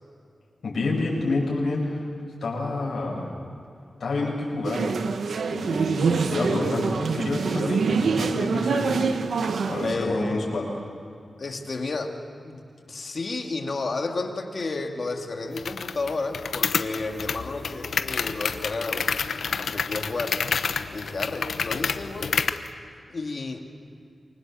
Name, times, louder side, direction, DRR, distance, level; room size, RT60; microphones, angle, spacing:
voice 1, 0.6-2.0 2.4-3.3 4.0-4.9 5.5-9.1 9.7-10.6, left 2 dB, 65° left, -3 dB, 7.9 m, -28 dB
sound 1, 4.6-9.9, right 5 dB, 85° right, 1.3 m, -25 dB
voice 2, 9.8-10.6 11.4-12.2 12.4-19.1 19.6-20.4 20.9-22.4 23.1-23.7, left 3 dB, 45° left, 3 dB, 2.4 m, -32 dB
sound 2, 15.6-22.7, left 5 dB, 85° left, 1.1 m, -29 dB
28.0 x 24.5 x 7.7 m, 2.4 s
wide cardioid pair, 150°, 0 cm